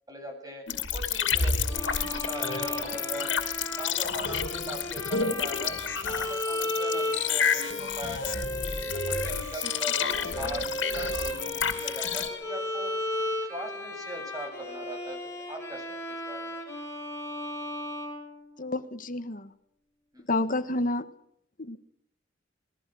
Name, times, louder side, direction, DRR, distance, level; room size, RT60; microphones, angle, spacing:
voice 1, 0.1-0.6 0.9-3.3 3.7-8.3 8.8-12.9 13.5-16.6 20.1-20.3, right 1 dB, 20° right, 4 dB, 7.9 m, -40 dB
sound 1, 0.7-12.3, left 6 dB, 80° left, 2.7 m, -30 dB
Bowed string instrument, 1.7-18.9, left 1 dB, 15° left, 6.3 m, -35 dB
voice 2, 18.6-19.5 20.3-21.0 21.6-21.8, left 2 dB, 45° left, 10 dB, 1.6 m, -29 dB
27.5 x 21.5 x 6.5 m, 0.71 s
head